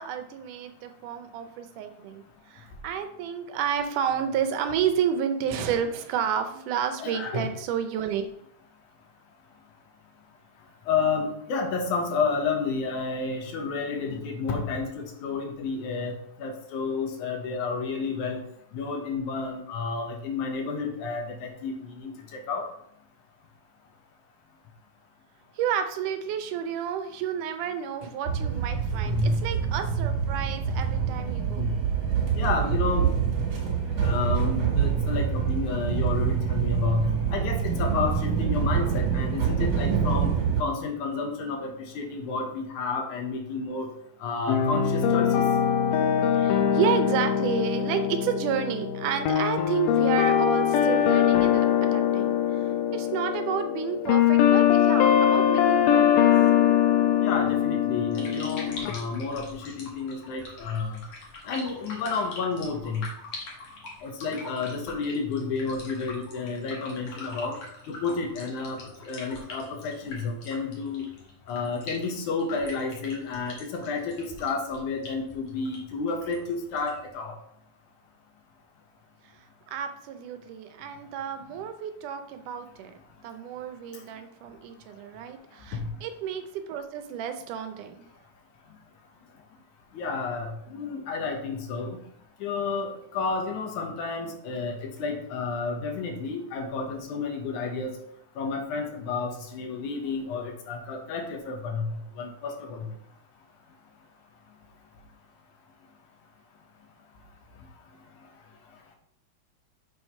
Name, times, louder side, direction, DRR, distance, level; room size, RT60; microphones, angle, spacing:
voice 1, 0.0-8.3 25.5-31.7 46.3-56.3 56.6-57.1 79.2-82.9 83.2-88.1, right 8 dB, 80° right, 7 dB, 2.2 m, -31 dB
voice 2, 7.0-7.4 10.9-18.4 18.7-22.6 29.0-29.4 31.6-31.7 32.4-33.1 34.0-40.3 40.6-43.9 44.2-45.4 57.1-61.0 61.5-63.1 64.0-67.5 67.9-68.8 69.1-71.0 71.5-77.3 89.9-92.0 92.4-97.9 98.4-101.9 102.2-102.8, left 4 dB, 70° left, 3 dB, 2.4 m, -31 dB
sound 1, 28.3-40.6, right 7 dB, 65° right, 3.0 m, -26 dB
sound 2, 44.5-58.9, left 9 dB, 90° left, 2.3 m, -22 dB
sound 3, 57.9-77.1, left 2 dB, 50° left, 2.3 m, -43 dB
6.4 x 4.8 x 5.5 m, 0.70 s
omnidirectional pair, 3.7 m